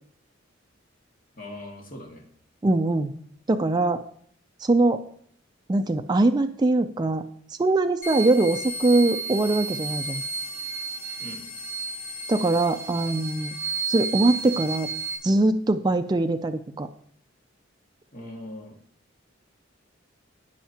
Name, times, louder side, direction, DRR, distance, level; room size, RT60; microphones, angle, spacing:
voice 1, 1.4-2.3 11.2-11.4 18.1-18.8, left 1 dB, 45° left, 0 dB, 1.9 m, -40 dB
voice 2, 2.6-3.1 3.5-4.0 4.6-5.0 5.7-7.2 7.6-10.2 12.3-13.6 13.9-14.9 15.2-16.9, right 2 dB, 20° right, 7 dB, 0.3 m, -22 dB
sound 1, 8.0-15.2, right 4 dB, 70° left, 3.2 m, -32 dB
16.0 x 5.5 x 2.9 m, 0.62 s
head